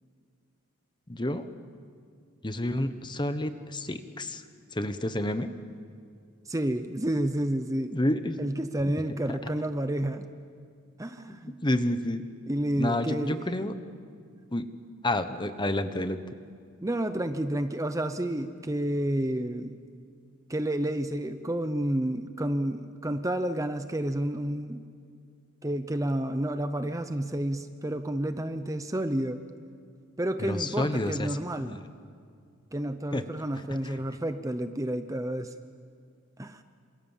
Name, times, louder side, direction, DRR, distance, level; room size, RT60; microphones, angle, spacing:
voice 1, 1.1-1.5 2.4-4.4 4.7-5.5 7.9-8.4 9.3-9.4 11.3-12.2 12.8-13.7 14.5-14.6 15.0-16.2 30.4-31.3 31.6-31.8 33.1-33.2 33.8-34.0, left 1 dB, 20° left, 10 dB, 1.1 m, -29 dB
voice 2, 6.5-7.9 8.4-10.3 11.0-11.5 12.5-13.5 16.8-19.7 20.5-24.8 25.6-29.4 30.2-31.8 32.7-35.7 36.4-36.6, right 1 dB, 15° right, 9 dB, 0.8 m, -30 dB
27.5 x 27.5 x 7.4 m, 2.3 s
head